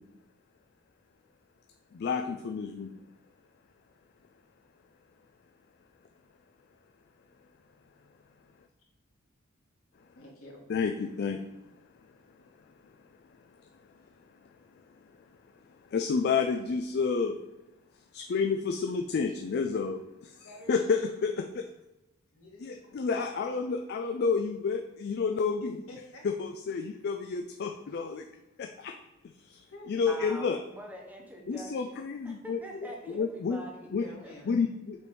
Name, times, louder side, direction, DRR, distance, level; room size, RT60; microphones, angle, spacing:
voice 1, 2.0-2.9 10.7-11.4 15.9-17.3 18.1-20.0 20.7-21.3 22.6-25.8 26.2-28.2 29.9-30.6 31.5-33.6 33.9-34.1 34.5-35.0, left 5 dB, 50° left, 4 dB, 0.4 m, -29 dB
voice 2, 10.1-10.6 20.4-21.3 22.3-23.2 25.6-26.3 27.9-28.0 29.7-30.0 34.0-34.5, left 1 dB, 75° left, -2 dB, 1.7 m, -49 dB
voice 3, 30.1-33.9 34.2-34.3, right 1 dB, 5° right, 0 dB, 0.8 m, -45 dB
6.8 x 3.4 x 4.7 m, 0.95 s
head